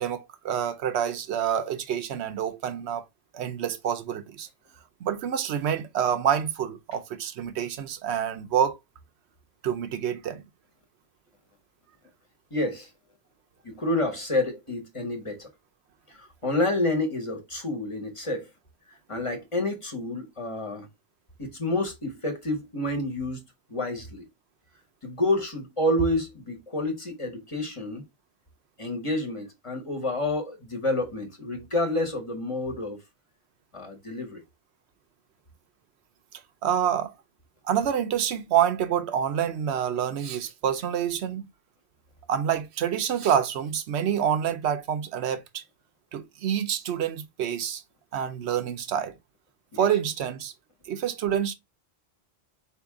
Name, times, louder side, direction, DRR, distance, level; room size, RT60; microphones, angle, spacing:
voice 1, 0.0-3.0 3.3-4.5 5.0-8.8 9.6-10.4 36.6-37.1 37.7-41.5 42.3-45.6 46.1-47.8 48.1-49.1 49.8-50.5 50.9-51.5, right 9 dB, 90° right, 0.9 m, -27 dB
voice 2, 12.5-12.9 13.6-15.5 16.1-18.5 19.1-20.9 21.4-23.4 23.7-24.2 25.0-28.0 28.8-33.0 33.7-34.4 49.7-49.8, left 1 dB, 30° left, 1.1 m, -29 dB
4.3 x 2.8 x 3.5 m
omnidirectional pair, 1.1 m